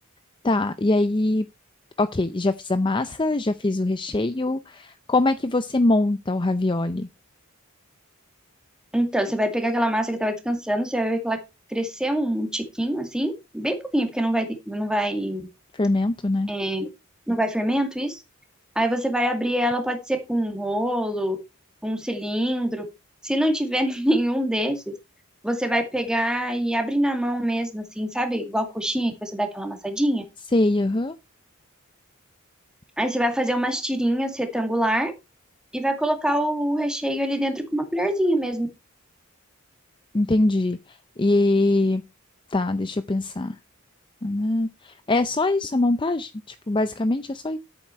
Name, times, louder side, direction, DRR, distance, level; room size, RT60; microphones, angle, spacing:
voice 1, 0.4-1.5 2.0-7.1 15.7-16.5 30.5-31.2 40.1-42.0 42.5-43.6 44.2-47.6, left 2 dB, 20° left, 0.5 m, -23 dB
voice 2, 8.9-11.4 11.7-15.5 16.5-16.9 17.3-18.2 18.8-21.4 21.8-22.8 23.2-24.9 25.4-30.2 33.0-35.1 35.7-38.7, right 1 dB, 5° right, 2.2 m, -25 dB
11.0 x 8.7 x 4.4 m
head